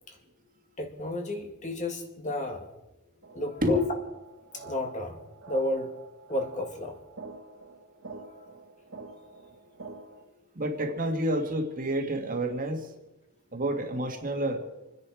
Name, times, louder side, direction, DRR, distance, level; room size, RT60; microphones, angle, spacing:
voice 1, 0.8-2.7 3.3-3.8 4.5-5.2 5.5-5.9 6.3-7.0 8.2-8.5, left 1 dB, 35° left, 4 dB, 2.0 m, -32 dB
sound 1, 3.2-10.2, right 4 dB, 60° right, 1.9 m, -47 dB
voice 2, 10.6-12.8 13.5-14.6, equal, 40° right, 3 dB, 1.9 m, -29 dB
26.5 x 10.5 x 4.9 m, 0.98 s
head